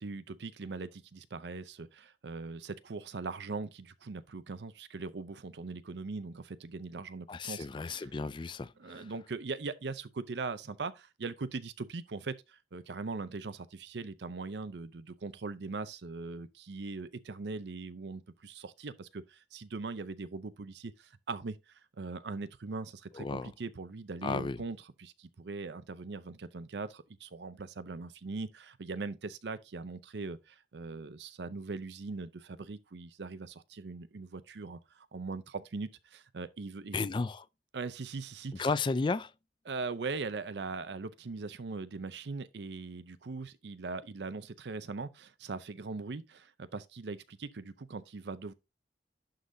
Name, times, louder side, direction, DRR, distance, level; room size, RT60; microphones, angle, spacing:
voice 1, 0.0-8.1 8.8-37.1 37.7-38.7 39.7-48.5, right 4 dB, 75° right, 0.6 m, -40 dB
voice 2, 7.3-9.1 23.1-23.5 24.2-24.6 36.9-37.4 38.6-39.3, left 4 dB, 25° left, 0.3 m, -33 dB
11.5 x 3.9 x 2.7 m
head